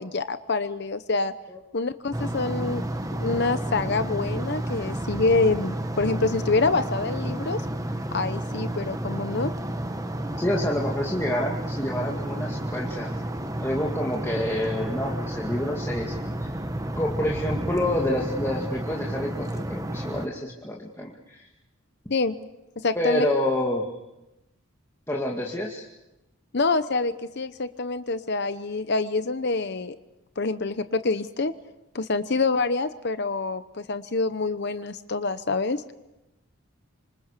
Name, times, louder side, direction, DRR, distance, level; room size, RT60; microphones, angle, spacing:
voice 1, 0.0-1.3 1.7-2.9 3.2-7.7 8.1-9.5 22.1-22.3 22.8-23.3 26.5-30.0 30.4-31.5 31.9-35.8, left 3 dB, 50° left, 11 dB, 0.8 m, -26 dB
sound 1, 2.1-20.3, right 1 dB, 15° right, 1.4 m, -31 dB
voice 2, 10.4-13.1 13.6-16.5 17.0-21.4 22.9-23.9 25.1-25.8, left 1 dB, 10° left, -2 dB, 2.1 m, -28 dB
26.5 x 26.0 x 6.7 m, 0.95 s
head